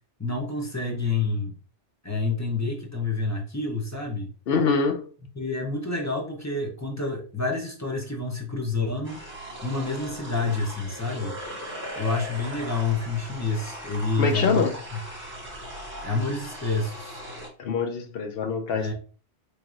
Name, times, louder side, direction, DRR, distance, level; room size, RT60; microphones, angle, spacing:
voice 1, 0.2-1.5 2.0-4.3 5.4-9.2 9.6-11.4 12.0-14.7 16.0-17.2 18.7-18.9, left 3 dB, 20° left, 0.6 m, -28 dB
voice 2, 4.5-5.1 14.2-14.7 17.6-18.9, left 5 dB, 60° left, 0.8 m, -24 dB
sound 1, 9.0-17.5, equal, 10° right, 1.2 m, -39 dB
4.4 x 3.2 x 2.5 m
omnidirectional pair, 1.2 m